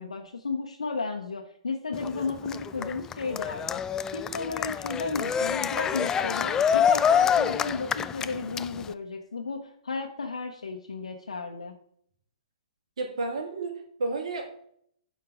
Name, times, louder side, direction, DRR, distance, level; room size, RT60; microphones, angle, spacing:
voice 1, 0.0-3.8 4.1-11.7, left 4 dB, 75° left, 1 dB, 1.0 m, -33 dB
Cheering, 1.9-8.9, left 8 dB, 15° left, 0.3 m, -26 dB
voice 2, 13.0-14.6, right 3 dB, 65° right, 3 dB, 2.4 m, -32 dB
11.5 x 4.5 x 4.9 m, 0.66 s
figure-of-eight pair, 120°, 3 cm